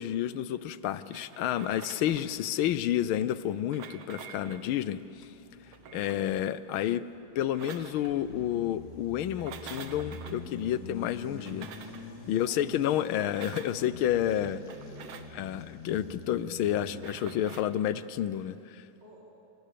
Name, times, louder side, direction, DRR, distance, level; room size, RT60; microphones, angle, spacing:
voice 1, 0.0-5.3 5.9-7.0 7.3-11.7 12.3-14.6 15.4-18.8, left 11 dB, 80° left, 15 dB, 1.6 m, -30 dB
sound 1, 1.1-2.4 3.5-4.7 5.6-6.3 7.3-8.1 9.3-10.4 11.3-12.1 13.1-13.8 14.6-15.4 16.9-17.7, right 7 dB, 80° right, 2.1 m, -47 dB
sound 2, 5.0-6.7 7.3-17.1, left 2 dB, 40° left, 2.5 m, -46 dB
voice 2, 12.2-13.1 14.3-15.5 19.0-19.2, equal, 25° right, -7 dB, 4.6 m, -53 dB
27.0 x 26.0 x 6.9 m, 2.8 s
omnidirectional pair, 2.3 m